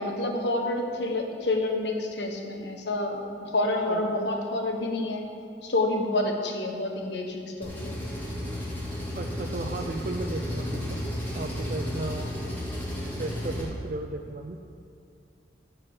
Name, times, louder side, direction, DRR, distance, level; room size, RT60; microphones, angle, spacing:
voice 1, 0.0-5.2 5.6-7.9, left 2 dB, 75° left, 2 dB, 1.2 m, -28 dB
Engine, 7.6-13.6, left 1 dB, 10° left, 2.0 m, -33 dB
voice 2, 9.1-11.0 11.3-12.3 13.0-14.6, right 2 dB, 45° right, 1 dB, 0.5 m, -35 dB
12.5 x 4.6 x 7.8 m, 2.4 s
head